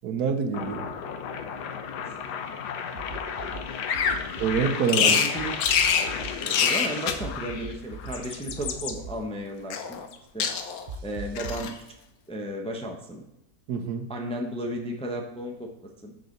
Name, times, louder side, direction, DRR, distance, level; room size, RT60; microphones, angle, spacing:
voice 1, 0.0-0.9 4.4-5.2 13.7-14.1, right 6 dB, 75° right, 6 dB, 1.3 m, -26 dB
sound 1, 0.5-8.3, left 7 dB, 90° left, 1.4 m, -34 dB
sound 2, 3.0-3.6 3.9-4.6 5.4-6.3 7.2-8.1 8.5-9.1 10.9-11.7, right 4 dB, 55° right, 0.8 m, -39 dB
Bird vocalization bird call bird song, 3.9-4.2 4.9-5.3 5.6-6.1 6.4-6.9 7.9-8.9 9.7-10.1 10.4-10.9 11.4-11.7, left 7 dB, 70° left, 1.2 m, -25 dB
voice 2, 5.0-5.6 6.4-10.0 10.3-10.5 11.0-11.7 12.3-13.2 14.1-15.7 16.0-16.1, right 1 dB, 5° left, 1 dB, 0.7 m, -34 dB
6.7 x 4.9 x 6.4 m, 0.89 s
omnidirectional pair, 1.7 m